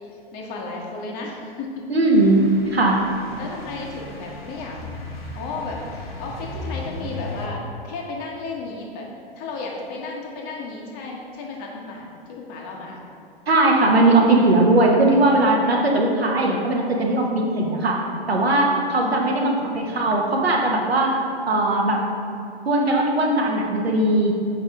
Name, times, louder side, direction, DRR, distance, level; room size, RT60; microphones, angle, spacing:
voice 1, 0.3-2.0 3.4-4.8 5.3-9.1 9.4-13.0 15.2-15.5 19.0-19.8, left 3 dB, 30° left, -1 dB, 1.0 m, -34 dB
voice 2, 1.9-3.0 13.5-21.1 21.5-22.0 22.6-24.4, right 2 dB, 80° right, 0 dB, 1.1 m, -19 dB
sound 1, 2.1-7.5, left 2 dB, 75° left, 1.1 m, -36 dB
6.5 x 4.9 x 3.4 m, 2.6 s
figure-of-eight pair, 110°, 30 cm